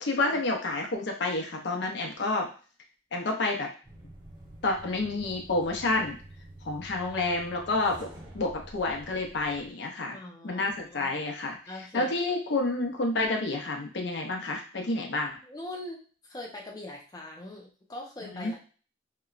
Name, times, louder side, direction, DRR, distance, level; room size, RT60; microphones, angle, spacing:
voice 1, 0.0-2.5 3.1-3.7 4.6-6.2 6.7-8.1 8.3-10.2 10.4-11.6 11.9-15.3 18.3-18.6, left 2 dB, 70° left, 2 dB, 0.6 m, -29 dB
sound 1, 3.8-9.7, right 1 dB, 25° right, 0.8 m, -48 dB
voice 2, 10.1-11.1 11.7-12.1 15.4-18.6, left 1 dB, 20° left, -1 dB, 0.5 m, -42 dB
2.9 x 2.1 x 2.4 m, 0.38 s
head